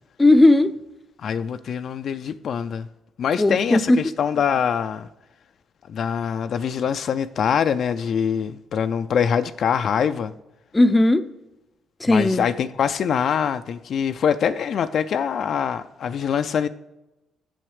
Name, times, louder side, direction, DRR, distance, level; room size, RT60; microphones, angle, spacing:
voice 1, 0.2-0.8 3.4-4.0 10.7-11.2 12.0-12.4, left 2 dB, 15° left, 0.6 m, -16 dB
voice 2, 1.2-2.9 3.2-5.1 5.9-10.3 12.1-16.7, left 7 dB, 60° left, 0.4 m, -24 dB
7.6 x 7.1 x 4.8 m
cardioid pair, 90°, 0 cm